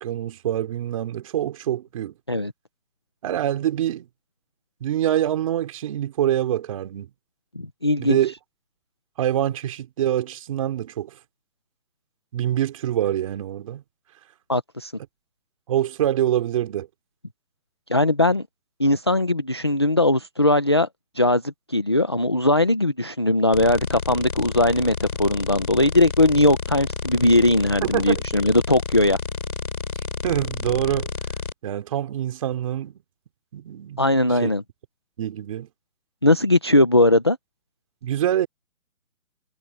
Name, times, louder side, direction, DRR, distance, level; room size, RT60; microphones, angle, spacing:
voice 1, 0.0-2.1 3.2-4.1 4.8-7.1 8.0-8.3 9.2-11.1 12.3-13.8 15.7-16.9 27.8-28.2 30.2-31.1 31.6-33.0 33.5-34.0 34.4-34.5 35.2-35.7 38.0-38.5, right 11 dB, 20° right, 3.4 m, -25 dB
voice 2, 7.6-8.2 14.5-14.9 17.9-18.5 18.8-20.9 21.2-29.2 34.0-34.6 36.2-37.4, left 1 dB, 20° left, 0.7 m, -19 dB
sound 1, 23.5-31.5, left 4 dB, 75° left, 7.1 m, -31 dB
hypercardioid pair, 170°, 44 cm